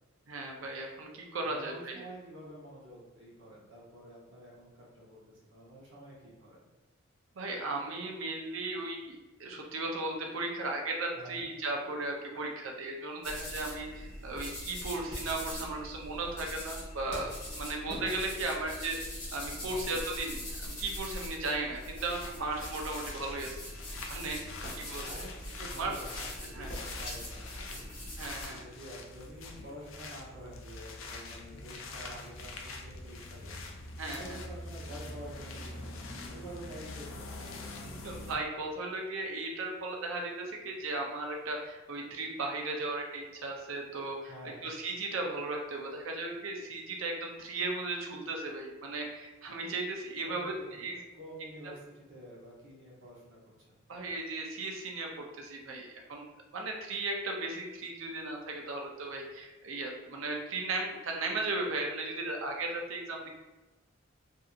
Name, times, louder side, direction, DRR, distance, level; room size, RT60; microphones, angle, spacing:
voice 1, 0.3-2.0 7.4-23.6 24.1-25.1 25.8-26.0 26.5-26.7 28.2-28.6 34.0-34.4 37.8-44.3 44.6-50.9 53.9-56.3 56.5-63.3, right 2 dB, 85° right, 1 dB, 0.6 m, -36 dB
voice 2, 1.4-6.7 11.2-11.5 15.1-15.5 19.6-20.0 24.5-37.3 44.3-44.7 50.2-53.4 53.7-53.8, right 1 dB, 65° right, -5 dB, 0.9 m, -49 dB
sound 1, 13.2-28.5, left 1 dB, 40° left, 1.1 m, -42 dB
sound 2, 21.8-38.4, left 2 dB, 80° left, 0.4 m, -44 dB
2.7 x 2.6 x 2.4 m, 1.1 s
head